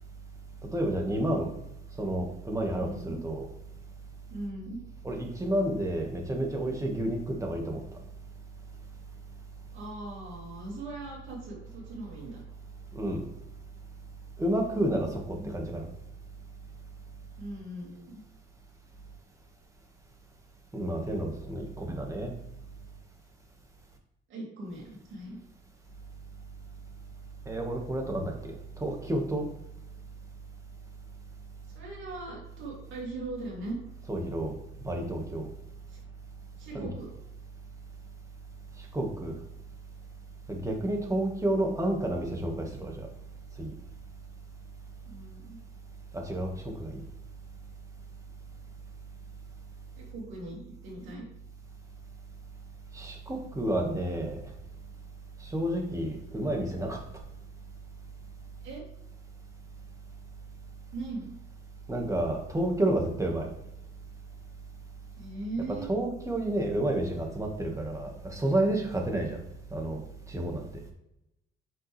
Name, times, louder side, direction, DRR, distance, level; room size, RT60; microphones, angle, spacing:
voice 1, 0.7-1.5 2.0-3.5 5.0-7.8 13.0-13.3 14.4-15.9 20.7-22.3 27.5-29.5 34.1-34.5 34.8-35.5 36.7-36.9 38.9-39.4 40.5-43.1 43.6-43.7 46.1-47.0 52.9-54.4 55.4-57.0 61.9-63.5 65.8-69.4 69.7-70.0 70.3-70.6, right 1 dB, 15° right, 1 dB, 1.8 m, -30 dB
voice 2, 2.8-3.2 4.3-4.8 9.7-12.4 14.7-15.6 17.4-18.2 24.3-25.4 31.7-33.8 35.9-36.0 36.6-37.1 40.7-40.9 45.1-45.6 50.0-51.3 58.6-58.8 60.9-61.4 65.2-65.9, right 2 dB, 75° right, -4 dB, 2.7 m, -40 dB
7.3 x 5.6 x 3.4 m, 0.83 s
cardioid pair, 90°, 20 cm